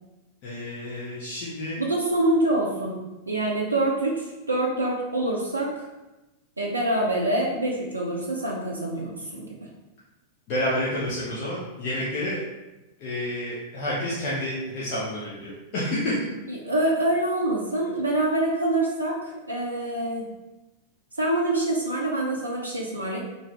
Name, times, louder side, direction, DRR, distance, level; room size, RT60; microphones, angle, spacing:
voice 1, 0.4-1.8 10.5-12.4 13.0-16.2, left 1 dB, 45° left, -8 dB, 0.7 m, -29 dB
voice 2, 1.8-3.0 3.3-5.7 6.6-9.5 16.5-20.2 21.2-23.2, right 1 dB, 80° right, -2 dB, 0.4 m, -25 dB
2.6 x 2.5 x 3.1 m, 1.0 s
figure-of-eight pair, 90°, 0 cm